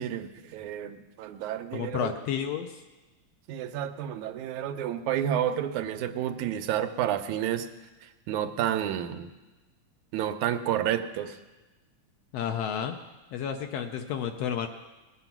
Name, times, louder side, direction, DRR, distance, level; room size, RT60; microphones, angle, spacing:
voice 1, 0.0-2.1 3.5-7.7 8.3-9.3 10.1-11.4, right 10 dB, 85° right, 9 dB, 2.1 m, -30 dB
voice 2, 1.7-2.8 12.3-12.9 13.3-14.7, left 8 dB, 75° left, 6 dB, 1.6 m, -31 dB
19.5 x 7.8 x 5.9 m, 1.2 s
omnidirectional pair, 3.3 m